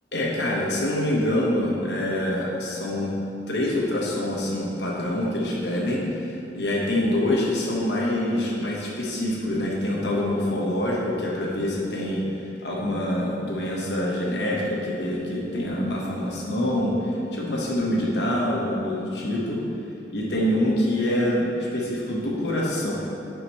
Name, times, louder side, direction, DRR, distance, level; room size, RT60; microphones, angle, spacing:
voice 1, 0.1-3.1 3.5-19.6 20.1-22.9, left 1 dB, 70° left, -3 dB, 1.1 m, -25 dB
9.7 x 5.2 x 3.0 m, 2.8 s
head